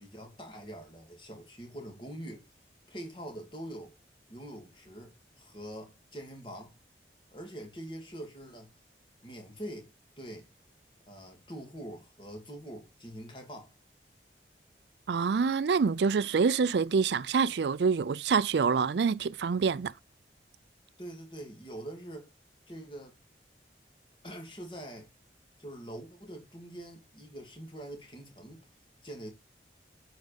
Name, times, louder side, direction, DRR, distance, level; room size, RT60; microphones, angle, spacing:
voice 1, 0.0-2.5 2.9-3.9 4.3-6.7 7.3-8.7 9.2-10.5 11.1-13.7 21.0-22.3 22.7-23.2 24.2-25.1 25.6-28.7 29.0-29.3, right 1 dB, 30° left, 2.6 m, -44 dB
voice 2, 15.1-19.9, right 5 dB, 75° right, 0.4 m, -26 dB
8.2 x 4.9 x 5.1 m
head